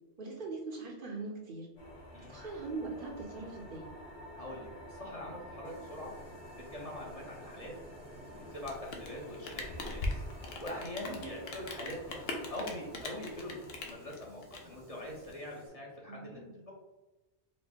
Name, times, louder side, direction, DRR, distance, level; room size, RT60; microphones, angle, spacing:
voice 1, 0.2-1.7 2.3-3.9 11.0-11.4 16.1-16.6, right 3 dB, 55° right, -1 dB, 0.8 m, -41 dB
sound 1, 1.8-13.9, left 1 dB, 85° left, 1.4 m, -50 dB
voice 2, 4.4-6.1 6.7-7.7 8.2-10.2 10.6-12.2 12.5-16.7, left 1 dB, 35° left, -3 dB, 0.8 m, -43 dB
sound 2, 5.6-15.7, right 1 dB, 80° right, 1.2 m, -57 dB
Rain, 8.5-15.3, left 2 dB, 65° left, 0.9 m, -40 dB
5.0 x 2.1 x 3.5 m, 1.1 s
omnidirectional pair, 1.1 m